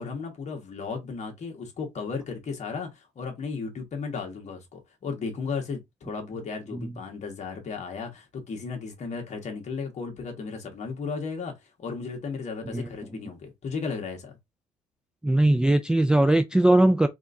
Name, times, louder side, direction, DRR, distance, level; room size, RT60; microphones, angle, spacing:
voice 1, 0.0-11.5 11.8-14.4, left 5 dB, 45° left, 1.6 m, -35 dB
voice 2, 15.2-17.1, right 1 dB, 5° right, 0.3 m, -20 dB
3.5 x 3.5 x 2.6 m
cardioid pair, 110°, 17 cm